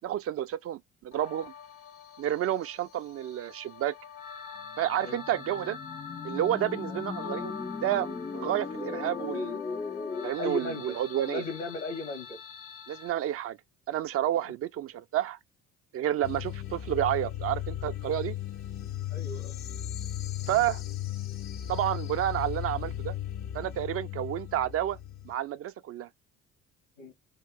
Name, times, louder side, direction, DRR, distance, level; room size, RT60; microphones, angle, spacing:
voice 1, 0.0-1.5 2.2-4.0 4.8-5.8 6.2-7.5 7.8-9.6 10.2-11.4 12.9-13.6 13.9-15.4 15.9-18.3 20.5-20.8 21.7-23.1 23.5-25.0 25.3-26.1, right 12 dB, 40° right, 0.4 m, -30 dB
sound 1, 1.1-13.1, left 7 dB, 65° left, 1.2 m, -44 dB
sound 2, 4.8-10.3, left 4 dB, 15° left, 0.5 m, -37 dB
voice 2, 10.4-11.0 11.3-12.4 18.2-18.3 19.1-19.6 27.0-27.1, left 2 dB, 80° left, 2.0 m, -36 dB
sound 3, 16.2-25.3, left 12 dB, 50° left, 0.7 m, -36 dB
3.7 x 2.4 x 3.6 m
figure-of-eight pair, 50°, 36 cm